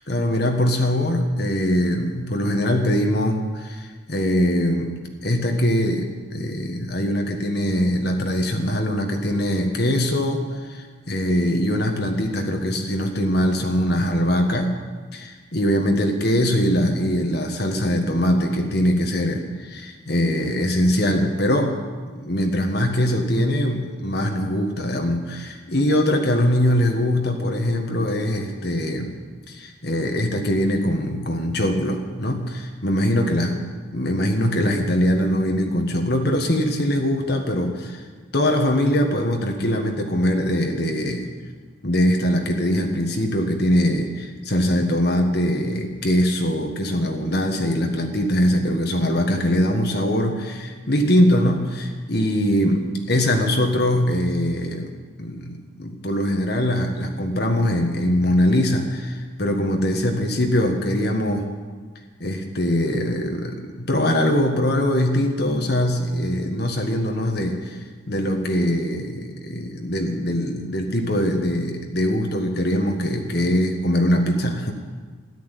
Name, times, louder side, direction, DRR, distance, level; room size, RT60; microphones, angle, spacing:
voice 1, 0.0-14.8 15.1-21.8 22.1-29.1 29.5-33.6 33.9-38.0 38.3-41.3 41.8-61.5 62.2-67.8 68.1-74.7, equal, 55° left, 3 dB, 1.6 m, -22 dB
14.0 x 11.5 x 8.3 m, 1.5 s
head